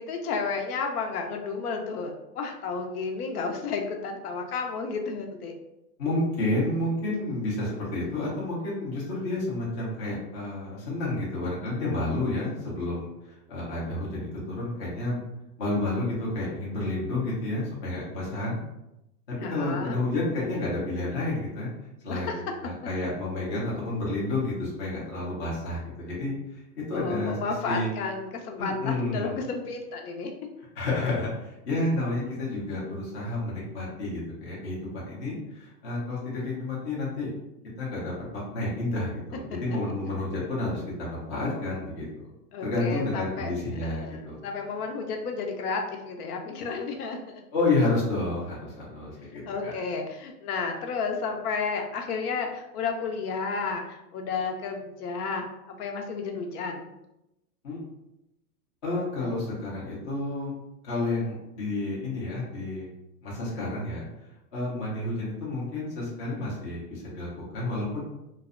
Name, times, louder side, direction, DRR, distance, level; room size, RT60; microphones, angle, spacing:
voice 1, 0.0-5.5 19.4-20.0 22.1-22.4 26.9-30.3 42.5-47.4 49.5-56.9, left 4 dB, 65° left, 3 dB, 0.6 m, -32 dB
voice 2, 6.0-13.1 13.5-15.2 15.6-18.6 19.5-21.7 22.0-22.3 22.6-26.3 26.7-27.4 27.6-27.9 28.6-29.4 30.8-37.4 37.8-42.1 42.6-44.4 47.5-49.7 57.6-57.8 58.8-60.5 60.8-62.9 63.2-64.1 64.5-68.0, left 2 dB, 20° left, -6 dB, 0.4 m, -30 dB
2.6 x 2.0 x 2.4 m, 0.88 s
hypercardioid pair, 135°, 48 cm